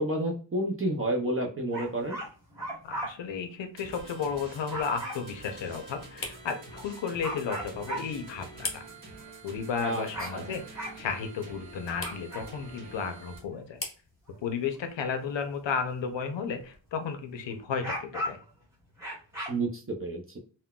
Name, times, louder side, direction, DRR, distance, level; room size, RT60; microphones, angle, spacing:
voice 1, 0.0-2.2 9.8-10.5 19.5-20.4, right 1 dB, 30° right, 0 dB, 0.4 m, -30 dB
sound 1, 1.7-3.1 4.2-5.1 6.3-6.4 6.7-6.8 7.2-8.2 8.8-9.5 9.8-11.5 12.0-12.7 13.1-13.4 14.3-14.8 15.3-15.4 17.7-18.5 19.0-19.5, equal, 5° right, 1.5 m, -36 dB
sound 2, 2.6-17.4, left 3 dB, 30° left, 0.6 m, -47 dB
voice 2, 2.8-8.8 9.4-10.6 11.0-13.8 14.4-18.4, left 6 dB, 90° left, 7 dB, 0.6 m, -33 dB
sound 3, 3.8-13.4, right 2 dB, 55° right, 1.5 m, -47 dB
3.7 x 2.1 x 2.2 m, 0.38 s
wide cardioid pair, 175°, 43 cm